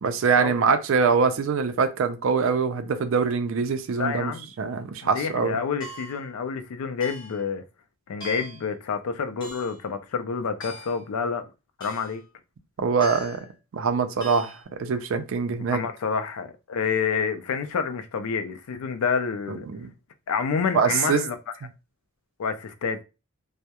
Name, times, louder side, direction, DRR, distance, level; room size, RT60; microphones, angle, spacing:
voice 1, 0.0-4.3 4.6-5.6 12.8-13.4 13.7-15.8 19.7-19.9 20.7-21.2, right 5 dB, 65° right, 0.4 m, -23 dB
voice 2, 3.9-4.5 5.0-7.6 8.1-11.5 11.8-12.2 15.6-19.7 20.3-21.4 22.4-23.0, left 5 dB, 85° left, 0.4 m, -28 dB
sound 1, 5.8-6.3 7.0-7.4 8.2-8.7 9.4-9.8 10.6-11.1 11.8-12.2 13.0-13.5 14.2-14.6, equal, 20° left, 1.0 m, -41 dB
2.2 x 2.0 x 2.8 m
head